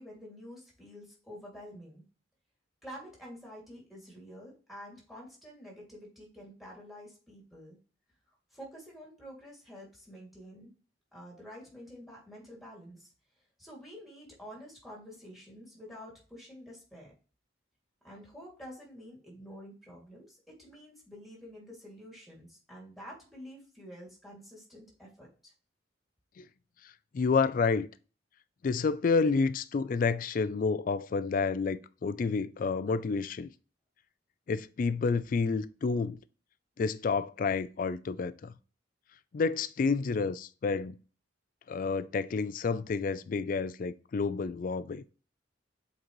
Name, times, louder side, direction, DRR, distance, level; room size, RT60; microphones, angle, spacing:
voice 1, 0.0-2.0 2.8-7.8 8.5-10.7 11.1-13.1 13.6-17.1 18.0-25.5, equal, ahead, 2.4 m, -49 dB
voice 2, 27.1-27.9 28.6-33.5 34.5-36.2 36.8-38.5 39.3-41.0 41.7-45.0, left 4 dB, 45° left, 0.3 m, -29 dB
7.6 x 4.0 x 3.0 m
head